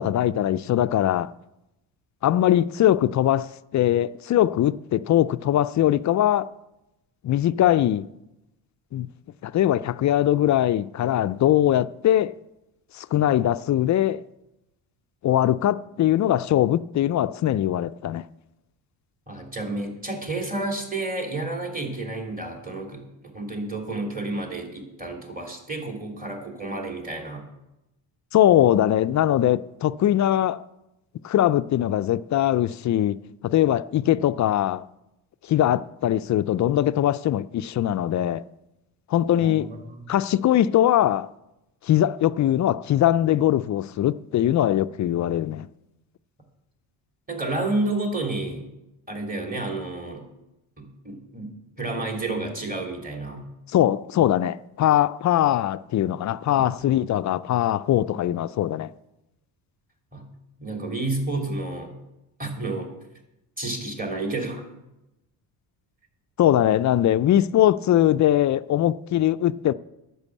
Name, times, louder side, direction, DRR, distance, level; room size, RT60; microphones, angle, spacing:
voice 1, 0.0-1.3 2.2-6.5 7.2-8.1 8.9-9.1 9.4-12.3 12.9-14.2 15.2-18.3 28.3-30.6 31.2-34.9 35.4-38.4 39.1-39.7 40.1-41.3 41.8-45.7 53.7-58.9 66.4-69.7, left 12 dB, 40° left, 0.4 m, -21 dB
voice 2, 19.3-27.4 39.4-40.1 47.3-48.7 49.1-50.2 50.8-53.4 56.5-56.6 60.1-60.2 60.6-61.9 62.4-62.9 63.6-64.6, right 2 dB, 20° right, 3.2 m, -30 dB
10.5 x 6.3 x 8.4 m
cardioid pair, 95°, 44 cm